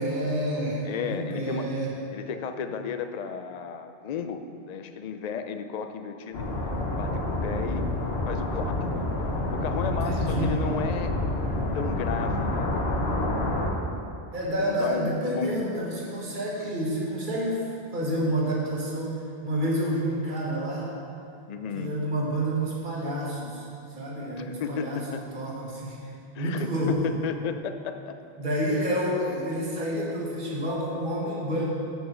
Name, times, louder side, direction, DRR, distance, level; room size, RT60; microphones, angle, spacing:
voice 1, 0.0-1.9 9.9-10.6 14.3-19.2 19.4-20.9 21.7-23.7 24.0-25.1 25.3-27.1 28.4-31.6, right 1 dB, 50° right, -5 dB, 1.6 m, -29 dB
voice 2, 0.8-1.7 2.1-4.4 4.7-6.5 7.0-7.9 8.3-9.1 9.5-11.1 11.7-12.9 14.5-15.8 16.6-16.7 21.5-22.0 24.4-25.2 26.3-28.2, left 6 dB, 55° left, 9 dB, 0.5 m, -34 dB
sound 1, 6.3-13.7, left 2 dB, 80° left, 1.3 m, -28 dB
6.2 x 5.5 x 7.1 m, 2.5 s
omnidirectional pair, 1.0 m